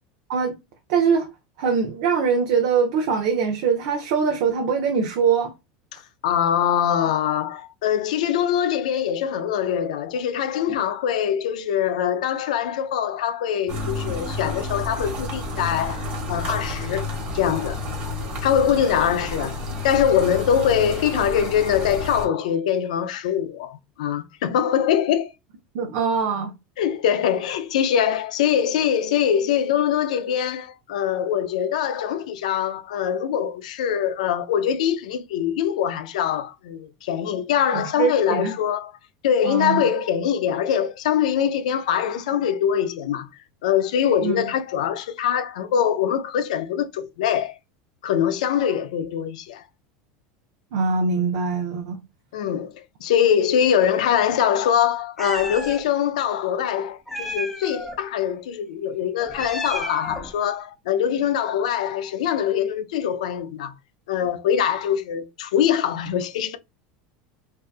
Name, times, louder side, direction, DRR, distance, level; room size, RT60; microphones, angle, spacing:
voice 1, 0.9-1.3 1.6-5.5 25.7-26.5 37.7-38.5 39.4-39.9 44.2-44.5 50.7-52.0, right 5 dB, 65° right, 0.6 m, -22 dB
voice 2, 5.9-17.1 17.3-17.8 18.4-25.3 26.8-38.9 39.2-43.3 43.6-47.5 48.0-49.6 52.3-63.8 64.1-66.6, left 9 dB, 90° left, 0.4 m, -23 dB
sound 1, 13.7-22.3, left 2 dB, 35° right, 1.2 m, -30 dB
Meow, 55.2-55.8 57.1-58.0 59.2-60.3, equal, 5° left, 0.5 m, -32 dB
2.7 x 2.3 x 2.4 m
supercardioid pair, 130°, 4 cm